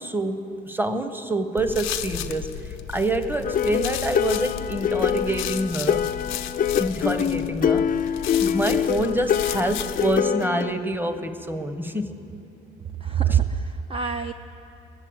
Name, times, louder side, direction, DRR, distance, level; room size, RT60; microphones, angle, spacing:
voice 1, 0.0-2.5 2.9-6.1 6.8-8.1 8.4-12.1 13.3-13.4, right 1 dB, 10° right, 9 dB, 0.9 m, -27 dB
sound 1, 1.6-10.2, left 11 dB, 85° left, 0.6 m, -34 dB
sound 2, 3.4-10.7, left 8 dB, 45° left, 0.4 m, -25 dB
voice 2, 13.0-14.3, right 8 dB, 30° right, 7 dB, 0.5 m, -24 dB
20.5 x 7.4 x 7.9 m, 2.9 s
cardioid pair, 90°, 20 cm